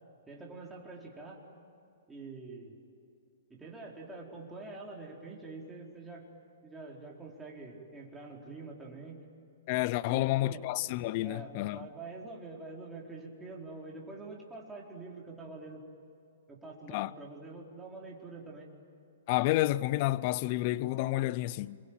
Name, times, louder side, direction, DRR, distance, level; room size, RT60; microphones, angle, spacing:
voice 1, 0.3-1.4 2.1-2.8 3.5-6.3 6.6-9.2 10.1-10.7 11.2-15.8 16.5-18.7, right 3 dB, 10° right, 4.7 m, -46 dB
voice 2, 9.7-11.9 16.9-17.1 19.3-21.8, left 17 dB, 45° left, 0.6 m, -30 dB
27.5 x 23.0 x 9.2 m
hypercardioid pair, 135°, 0 cm